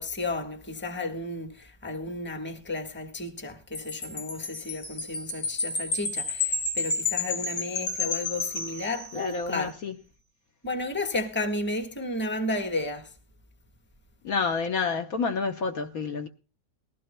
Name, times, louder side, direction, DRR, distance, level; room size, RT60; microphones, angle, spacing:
voice 1, 0.0-9.7 10.6-13.1, left 2 dB, 5° left, 1.2 m, -33 dB
Wind chime, 3.7-9.4, left 3 dB, 85° left, 3.1 m, -31 dB
voice 2, 9.1-9.9 14.2-16.3, left 4 dB, 55° left, 1.3 m, -29 dB
19.5 x 16.5 x 2.2 m
omnidirectional pair, 1.9 m